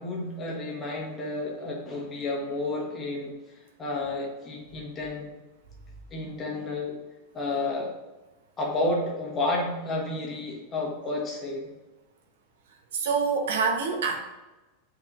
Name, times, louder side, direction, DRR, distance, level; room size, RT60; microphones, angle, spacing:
voice 1, 0.0-3.3 3.8-5.3 6.1-7.0 7.3-7.9 8.6-11.7, left 2 dB, 15° left, -2 dB, 1.1 m, -31 dB
voice 2, 12.9-14.3, right 5 dB, 80° right, 3 dB, 0.9 m, -26 dB
8.5 x 3.9 x 3.0 m, 1.1 s
supercardioid pair, 175°, 0 cm